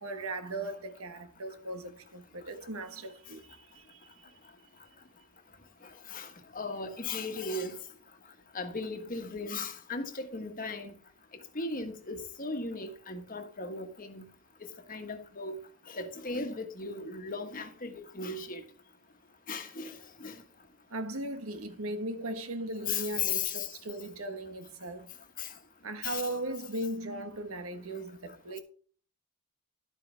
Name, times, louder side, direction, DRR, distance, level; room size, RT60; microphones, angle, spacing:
voice 1, 0.0-3.4 3.7-4.0 20.9-25.1 25.8-28.6, right 2 dB, 85° right, 1.4 m, -38 dB
voice 2, 6.5-7.8 8.5-10.9 11.5-14.2 14.6-15.6 15.9-18.6 19.5-20.3 22.9-23.7 25.4-25.5 26.0-26.4, left 4 dB, 40° left, 1.4 m, -36 dB
11.5 x 8.2 x 3.4 m
head